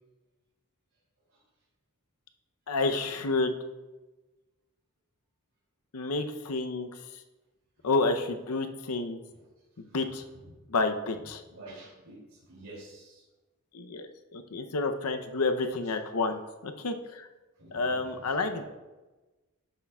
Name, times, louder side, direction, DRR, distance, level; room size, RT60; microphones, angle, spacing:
voice 1, 2.7-3.5 5.9-6.9 7.8-9.2 9.8-10.2 10.7-11.4 13.7-17.3 17.7-18.6, left 3 dB, 85° left, 7 dB, 0.7 m, -30 dB
voice 2, 11.5-13.2 17.6-18.6, right 2 dB, 90° right, -8 dB, 2.7 m, -48 dB
11.0 x 8.0 x 2.3 m, 1.1 s
head